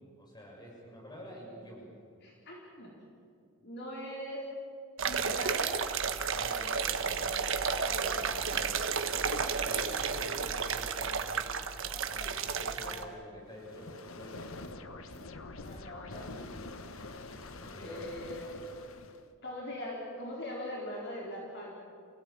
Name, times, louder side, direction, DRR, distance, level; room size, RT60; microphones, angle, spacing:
voice 1, 0.2-1.9 6.3-8.8 9.2-11.5 11.8-14.9 17.6-18.2, equal, 20° left, -2 dB, 6.8 m, -49 dB
voice 2, 2.2-3.0 3.6-4.4 5.0-5.9 7.5-8.7 9.3-9.4 12.2-12.3 12.8-13.3 15.6-16.8 17.2-17.3 17.8-18.7 19.4-21.7, left 1 dB, 50° left, -3 dB, 4.6 m, -42 dB
sound 1, 5.0-13.0, right 6 dB, 60° right, 1.3 m, -32 dB
sound 2, 13.5-19.3, left 2 dB, 65° left, 1.3 m, -46 dB
28.5 x 17.0 x 9.0 m, 2.5 s
head